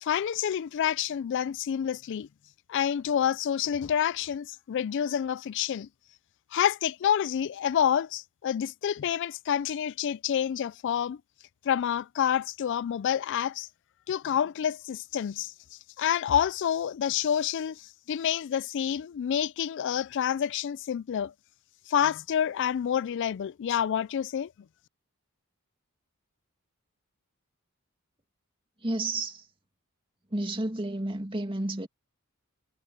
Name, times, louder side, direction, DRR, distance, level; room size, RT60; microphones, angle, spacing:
voice 1, 0.0-2.3 2.7-5.9 6.5-11.2 11.6-13.7 14.1-15.5 16.0-21.3 21.9-24.5, left 9 dB, 55° left, 0.3 m, -28 dB
voice 2, 28.8-29.5 30.3-31.9, right 2 dB, 25° right, 2.4 m, -31 dB
head